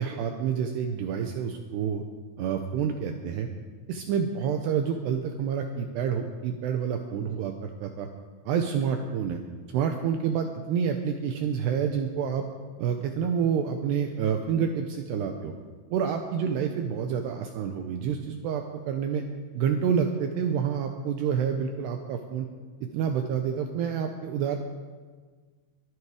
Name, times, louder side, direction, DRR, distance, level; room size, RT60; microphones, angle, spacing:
voice 1, 0.0-2.0 2.4-3.5 3.9-8.1 8.5-9.4 9.7-12.5 12.8-15.5 15.9-19.2 19.5-22.5 22.9-24.6, right 7 dB, 85° right, 5 dB, 2.4 m, -28 dB
22.5 x 9.6 x 4.9 m, 1.5 s
omnidirectional pair, 5.8 m